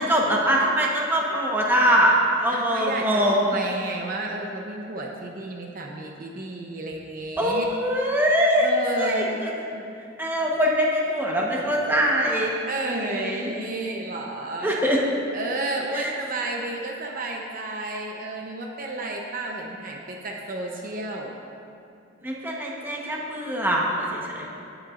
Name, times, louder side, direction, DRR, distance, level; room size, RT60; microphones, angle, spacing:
voice 1, 0.0-3.4 7.4-8.7 9.0-9.5 10.2-12.5 13.0-13.5 14.6-15.0 15.9-16.1 22.2-24.5, equal, 10° right, -3 dB, 1.1 m, -23 dB
voice 2, 2.5-7.7 8.6-9.4 9.7-9.8 12.7-14.9 15.3-21.3, right 2 dB, 45° right, 0 dB, 0.8 m, -31 dB
18.0 x 8.1 x 2.5 m, 2.5 s
head